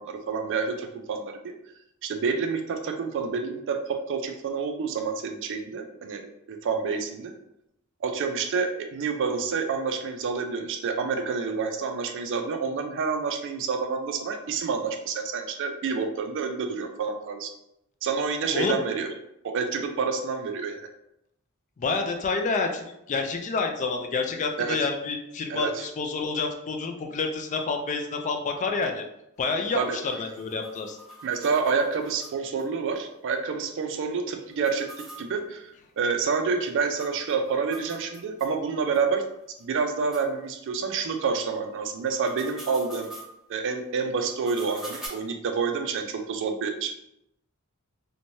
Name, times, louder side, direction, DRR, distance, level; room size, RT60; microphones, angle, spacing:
voice 1, 0.0-1.5 2.0-7.3 8.0-17.5 18.0-19.1 19.4-20.9 24.6-24.8 25.5-25.9 29.7-30.0 31.2-34.9 35.2-39.2 39.6-43.1 43.5-46.9, right 5 dB, 60° right, 6 dB, 0.4 m, -28 dB
voice 2, 21.8-29.0 29.4-31.0, left 4 dB, 35° left, 4 dB, 0.3 m, -28 dB
sound 1, 29.4-32.6 33.0-33.1 33.3-33.4 34.5-38.5 38.9-39.0 39.6-39.7 40.1-40.3 42.0-43.3 44.3-45.1, right 1 dB, ahead, 0.7 m, -45 dB
3.0 x 2.1 x 2.6 m, 0.82 s
head